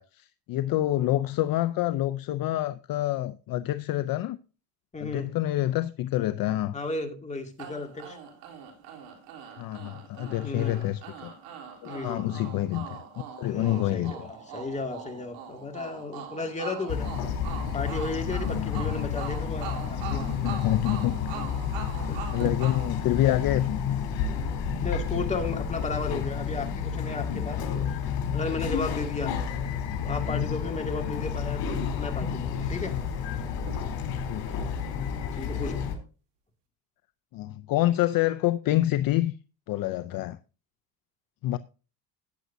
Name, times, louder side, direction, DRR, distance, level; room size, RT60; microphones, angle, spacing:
voice 1, 0.0-4.4 5.0-6.8 9.6-11.3 11.8-13.0 13.4-14.3 18.5-18.9 20.3-21.2 22.3-23.8 26.1-26.2 31.0-31.1 34.3-34.6 37.3-39.3 39.7-40.4 41.4-41.6, left 14 dB, 50° left, 0.6 m, -27 dB
voice 2, 4.9-5.3 6.7-8.2 10.4-10.9 11.8-12.3 13.5-14.2 14.5-17.1 17.7-20.6 21.3-21.6 22.1-22.2 24.3-24.5 24.8-27.6 28.3-29.4 30.0-32.9 35.4-35.8, left 3 dB, 15° left, 2.2 m, -34 dB
sound 1, 7.6-23.8, right 8 dB, 90° right, 3.5 m, -42 dB
Bird vocalization bird call bird song, 16.9-36.0, left 7 dB, 75° left, 3.6 m, -31 dB
sound 2, 22.4-23.0 23.8-23.9 24.7-24.8 25.1-25.4 26.6-26.7 26.9-27.0 27.2-27.3 28.9-29.4 31.7-32.4 33.6-34.3 35.5-35.9, right 9 dB, 70° right, 1.5 m, -43 dB
14.5 x 9.3 x 2.6 m
cardioid pair, 125°, 43 cm